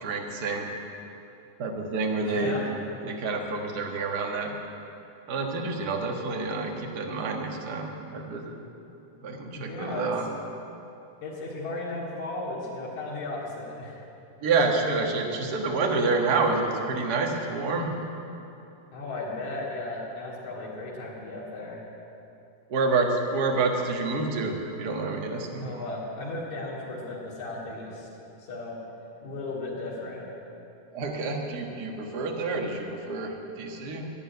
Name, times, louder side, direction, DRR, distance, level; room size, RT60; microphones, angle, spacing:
voice 1, 0.0-0.7 1.6-2.5 3.0-4.5 5.3-8.6 9.2-10.2 14.4-17.9 22.7-25.7 30.9-34.1, right 3 dB, 45° right, 1 dB, 1.4 m, -28 dB
voice 2, 2.2-2.6 9.6-10.1 11.2-14.0 18.9-21.8 25.6-28.1 28.4-28.8 29.2-30.3, left 2 dB, 65° left, -6 dB, 3.6 m, -35 dB
11.0 x 11.0 x 9.4 m, 2.8 s
omnidirectional pair, 3.6 m